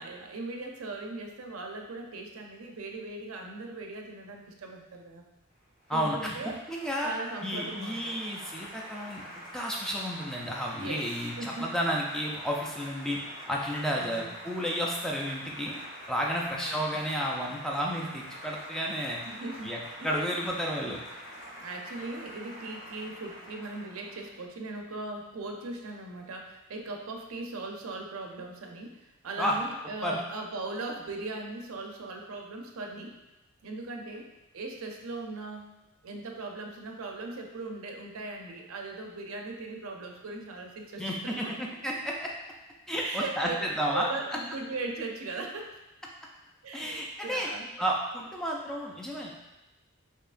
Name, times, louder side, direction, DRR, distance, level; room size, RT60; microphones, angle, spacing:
voice 1, 0.0-5.3 5.9-6.6 7.0-8.2 10.8-11.7 13.9-14.3 16.4-16.8 19.2-20.2 21.6-33.2 33.6-34.3 34.5-35.7 36.0-41.5 43.0-45.8 46.6-47.7, right 3 dB, 90° right, 2 dB, 0.5 m, -39 dB
Applause, 5.5-24.4, equal, 70° left, 1.5 m, -46 dB
voice 2, 5.9-7.1 7.4-9.2 9.5-13.2 13.5-15.7 16.1-19.2 19.6-19.8 20.0-21.0 29.4-29.6 30.0-30.2 41.0-42.3 42.9-43.5 43.8-44.1 46.7-47.5 47.8-49.3, equal, 5° left, -2 dB, 0.3 m, -31 dB
4.5 x 2.9 x 2.5 m, 0.99 s
head